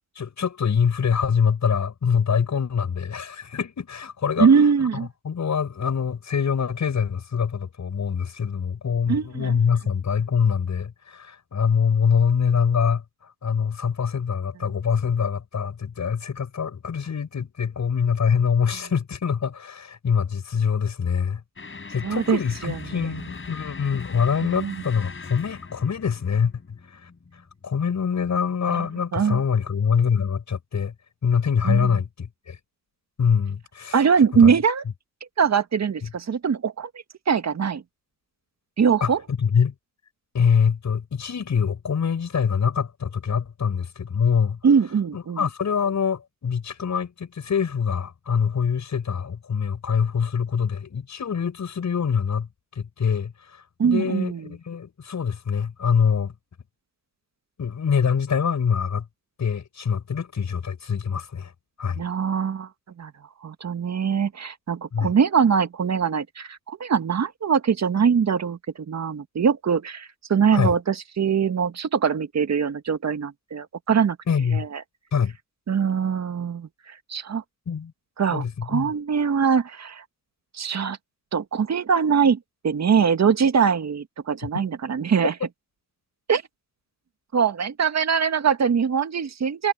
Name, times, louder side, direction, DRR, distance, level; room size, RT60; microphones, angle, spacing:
voice 1, 0.2-4.5 5.2-13.0 13.4-21.4 21.9-27.1 27.6-30.9 31.2-32.6 33.2-34.0 34.4-34.5 39.0-39.7 40.3-44.6 45.1-52.5 52.8-56.3 57.6-59.1 59.4-61.5 61.8-62.0 64.9-65.1 70.5-70.7 74.3-74.7 75.1-75.4 77.7-77.9 78.3-78.9, left 6 dB, 55° left, 7.6 m, -24 dB
voice 2, 4.4-5.1 9.1-9.5 22.0-23.2 24.4-24.8 28.7-28.8 29.1-29.4 31.6-31.9 33.9-34.8 35.4-36.9 37.3-37.8 38.8-39.2 44.6-45.4 53.8-54.5 62.0-62.7 63.0-63.1 63.4-68.6 68.9-74.2 74.5-74.8 75.7-77.4 78.2-80.0 80.5-81.0 81.3-82.4 82.6-85.3 86.3-86.4 87.3-89.7, right 6 dB, 50° right, 2.2 m, -22 dB
sound 1, 21.6-28.0, left 4 dB, 35° left, 6.6 m, -40 dB
supercardioid pair, 50°, 35 cm